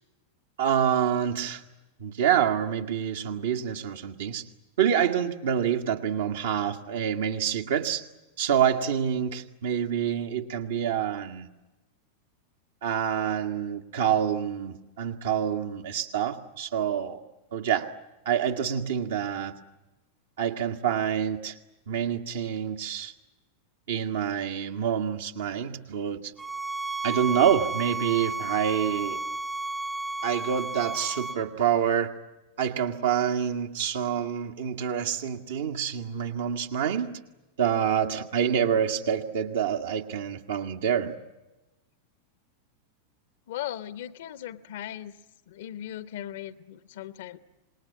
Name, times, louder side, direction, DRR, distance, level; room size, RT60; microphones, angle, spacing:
voice 1, 0.6-1.6 2.0-4.4 4.8-8.0 8.4-11.5 12.8-17.2 17.5-17.9 18.3-19.5 20.4-21.6 21.9-23.1 23.9-26.3 27.0-29.2 30.2-32.1 32.6-37.1 37.6-41.2, right 8 dB, 60° right, 4 dB, 1.7 m, -27 dB
sound 1, 26.4-31.4, right 3 dB, 5° right, 0.9 m, -32 dB
voice 2, 43.5-45.1 45.5-47.4, left 12 dB, 55° left, 16 dB, 1.0 m, -38 dB
27.0 x 20.5 x 9.5 m, 1.0 s
figure-of-eight pair, 90°, 0 cm